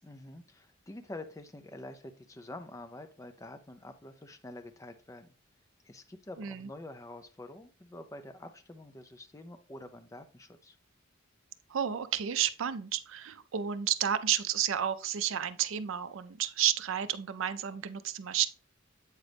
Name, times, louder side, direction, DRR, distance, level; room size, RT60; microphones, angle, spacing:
voice 1, 0.0-5.3 5.8-10.8, left 2 dB, 15° left, 0.5 m, -47 dB
voice 2, 6.4-6.7 11.7-18.5, right 10 dB, 65° right, 0.4 m, -31 dB
8.1 x 3.8 x 3.4 m
head